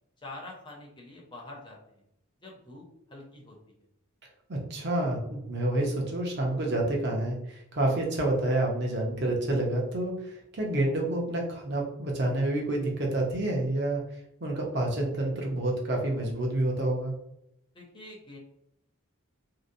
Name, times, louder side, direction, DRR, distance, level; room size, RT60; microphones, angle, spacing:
voice 1, 0.2-2.0 2.4-3.6 17.7-18.4, left 2 dB, 20° left, -2 dB, 0.6 m, -46 dB
voice 2, 4.5-14.0 14.4-17.1, right 1 dB, 50° right, -1 dB, 0.6 m, -28 dB
2.8 x 2.0 x 2.5 m, 0.79 s
head